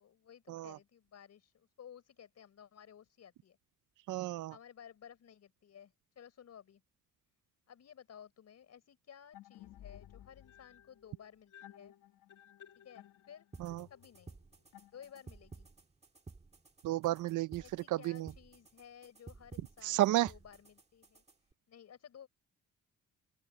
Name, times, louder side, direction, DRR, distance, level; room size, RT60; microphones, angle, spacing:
voice 1, 0.0-3.6 4.5-6.8 7.7-12.0 12.8-13.5 13.9-14.4 14.9-15.7 17.6-22.3, left 8 dB, 60° left, 5.7 m, -56 dB
voice 2, 4.1-4.5 13.6-13.9 16.8-17.6 17.9-18.3 19.8-20.3, right 15 dB, 85° right, 0.6 m, -32 dB
sound 1, 9.3-15.5, left 11 dB, 85° left, 1.8 m, -56 dB
sound 2, 13.5-21.5, right 3 dB, 20° right, 1.6 m, -55 dB
open air
cardioid pair, 125°, 30 cm